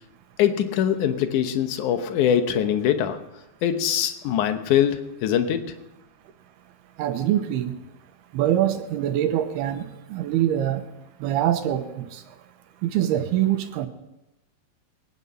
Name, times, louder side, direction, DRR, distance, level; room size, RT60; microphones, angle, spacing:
voice 1, 0.4-3.2 3.6-5.7, left 9 dB, 70° left, 8 dB, 1.9 m, -23 dB
voice 2, 7.0-7.8 8.3-10.8 11.2-12.2 12.8-13.9, right 11 dB, 75° right, 8 dB, 2.9 m, -24 dB
22.5 x 9.8 x 5.5 m, 0.94 s
omnidirectional pair, 4.8 m